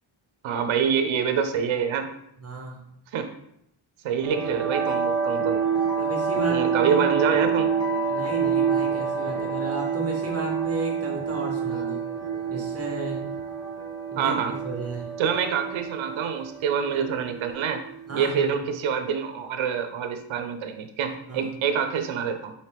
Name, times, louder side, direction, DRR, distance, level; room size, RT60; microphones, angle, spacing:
voice 1, 0.4-2.1 3.1-3.3 4.0-5.6 6.5-7.7 14.2-14.5 15.2-17.8 18.1-22.5, right 7 dB, 70° right, 7 dB, 0.5 m, -26 dB
voice 2, 2.4-2.8 6.0-7.0 8.0-12.0 12.5-13.2 14.1-15.1 18.1-18.5 21.3-21.5, right 2 dB, 30° right, 0 dB, 0.7 m, -34 dB
sound 1, 4.2-18.3, right 6 dB, 5° right, 1.2 m, -27 dB
4.4 x 2.6 x 3.3 m, 0.76 s
wide cardioid pair, 180°, 48 cm